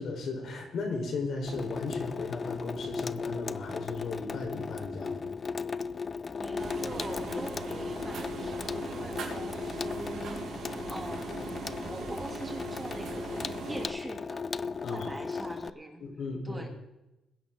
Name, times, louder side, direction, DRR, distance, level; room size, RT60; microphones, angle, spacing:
voice 1, 0.0-5.2 14.8-15.1 16.0-16.7, left 3 dB, 65° left, 2 dB, 3.9 m, -36 dB
Water tap faucet / Sink (filling or washing), 1.5-15.7, left 5 dB, 35° left, 0.4 m, -37 dB
voice 2, 6.3-13.4 13.7-14.4 14.9-16.0 16.4-16.7, right 1 dB, 15° right, 2 dB, 2.7 m, -43 dB
sound 1, 6.6-13.9, right 4 dB, 70° right, 4.0 m, -40 dB
21.5 x 10.5 x 3.7 m, 0.96 s
cardioid pair, 90°, 0 cm